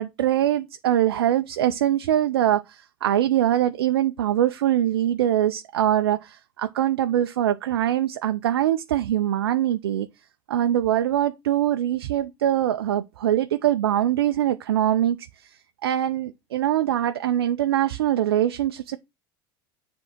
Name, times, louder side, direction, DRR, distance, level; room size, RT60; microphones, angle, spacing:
voice 1, 0.0-10.1 10.5-15.5 15.8-19.0, right 11 dB, 85° right, 0.5 m, -23 dB
7.6 x 3.7 x 5.8 m
hypercardioid pair, 85°, 12 cm